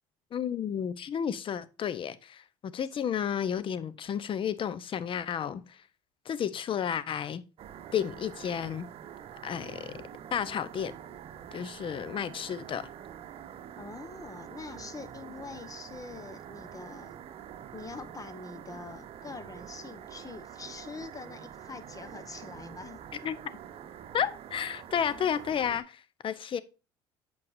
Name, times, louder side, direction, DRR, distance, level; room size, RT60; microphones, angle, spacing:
voice 1, 0.3-5.8 6.2-7.4 7.9-8.9 9.4-10.9 11.5-12.9 23.2-23.4 24.1-26.6, left 8 dB, 45° left, 0.8 m, -32 dB
sound 1, 7.6-25.8, right 9 dB, 50° right, 0.9 m, -46 dB
voice 2, 13.8-17.2 17.7-23.0, left 4 dB, 25° left, 1.3 m, -44 dB
8.5 x 6.6 x 2.6 m
hypercardioid pair, 65°, 13 cm